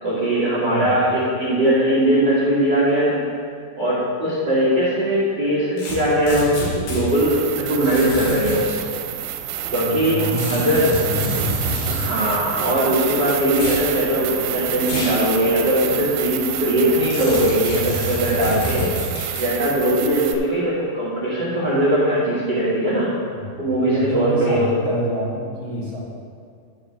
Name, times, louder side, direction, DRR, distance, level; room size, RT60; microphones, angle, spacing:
voice 1, 0.0-3.2 3.8-8.9 9.7-10.9 11.9-19.0 19.3-23.1 23.6-24.7, right 1 dB, 45° right, -9 dB, 1.5 m, -20 dB
voice 2, 0.7-1.0 9.8-11.7 18.6-19.0 23.3-26.0, equal, 40° left, -9 dB, 3.4 m, -28 dB
sound 1, 5.8-7.1 7.8-8.8 10.3-12.1 13.5-13.9 14.8-15.2 15.7-15.8 17.1-19.5, left 1 dB, 70° left, 3.8 m, -28 dB
sound 2, 7.1-20.3, right 10 dB, 90° right, 2.5 m, -28 dB
11.5 x 4.9 x 6.0 m, 2.4 s
omnidirectional pair, 4.3 m